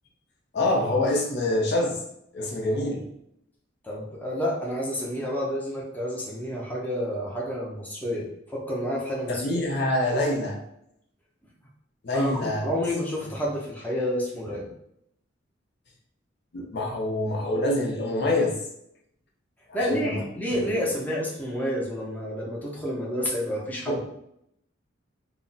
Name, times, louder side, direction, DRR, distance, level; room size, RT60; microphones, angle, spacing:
voice 1, 0.5-2.0 2.3-3.1 9.3-10.6 12.0-12.7 16.5-18.6 19.7-20.2 20.6-20.9 23.9-24.0, left 1 dB, 60° left, 0 dB, 0.6 m, -26 dB
voice 2, 3.8-9.5 12.1-14.7 19.7-24.1, equal, 10° left, -4 dB, 0.5 m, -29 dB
2.2 x 2.0 x 3.8 m, 0.76 s
head